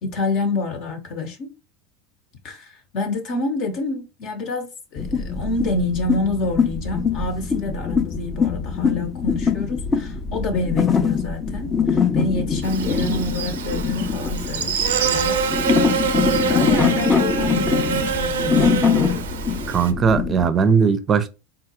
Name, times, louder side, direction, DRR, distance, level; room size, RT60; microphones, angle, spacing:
voice 1, 0.0-1.5 2.4-15.9 16.5-19.1, left 2 dB, 55° left, 0.8 m, -28 dB
sound 1, 5.0-20.5, left 5 dB, 25° left, 0.5 m, -23 dB
Buzz, 12.6-19.9, right 7 dB, 85° right, 0.4 m, -25 dB
voice 2, 19.7-21.3, right 6 dB, 30° right, 0.5 m, -18 dB
3.7 x 2.3 x 2.9 m
hypercardioid pair, 100°, 0 cm